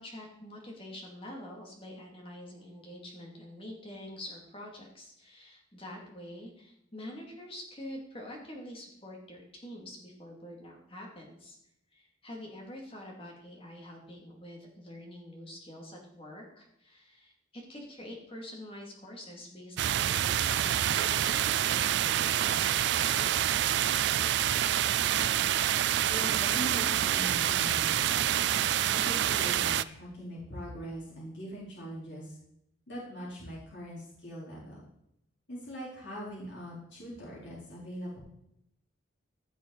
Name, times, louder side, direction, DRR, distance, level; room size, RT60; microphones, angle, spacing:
voice 1, 0.0-11.6 11.9-23.4, left 1 dB, 30° left, 0 dB, 2.5 m, -46 dB
sound 1, 19.8-29.8, right 11 dB, 60° right, 0.3 m, -27 dB
voice 2, 26.1-28.3 28.9-32.3 32.9-34.8 35.5-38.2, equal, 65° left, -6 dB, 4.1 m, -41 dB
15.5 x 6.3 x 4.1 m, 0.76 s
head